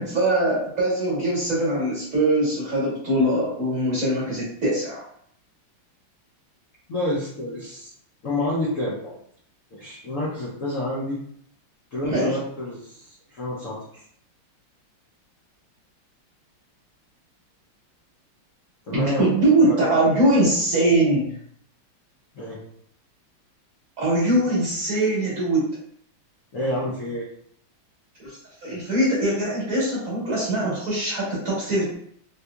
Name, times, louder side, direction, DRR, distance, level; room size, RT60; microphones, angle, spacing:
voice 1, 0.0-5.1 12.1-12.4 18.9-21.4 24.0-25.7 28.2-28.4 28.6-32.0, right 1 dB, 45° right, -6 dB, 1.3 m, -22 dB
voice 2, 6.9-7.9 8.2-9.1 9.7-11.2 11.9-14.0 18.9-19.2 19.6-20.0 22.3-22.6 26.5-27.2, left 1 dB, 65° left, -6 dB, 0.8 m, -29 dB
3.9 x 2.7 x 2.3 m, 0.66 s
omnidirectional pair, 2.4 m